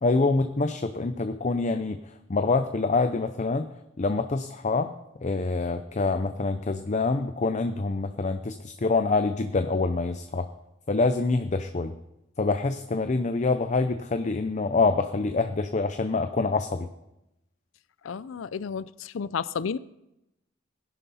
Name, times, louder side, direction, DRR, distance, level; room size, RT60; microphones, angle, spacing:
voice 1, 0.0-2.0 2.3-3.7 4.0-4.9 5.2-10.5 10.9-11.9 12.4-16.9, left 3 dB, 40° left, 0.6 m, -26 dB
voice 2, 18.0-19.8, left 6 dB, 80° left, 0.5 m, -32 dB
19.5 x 11.0 x 4.2 m
head